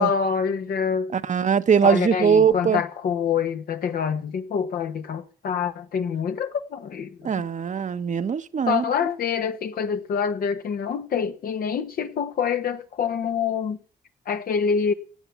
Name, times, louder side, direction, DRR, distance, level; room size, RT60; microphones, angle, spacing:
voice 1, 0.0-1.1 1.8-7.3 8.7-13.8 14.2-14.9, left 6 dB, 75° left, 1.5 m, -26 dB
voice 2, 1.1-2.8 7.2-8.8, right 7 dB, 50° right, 1.0 m, -21 dB
16.5 x 8.2 x 7.0 m
cardioid pair, 70°, 15 cm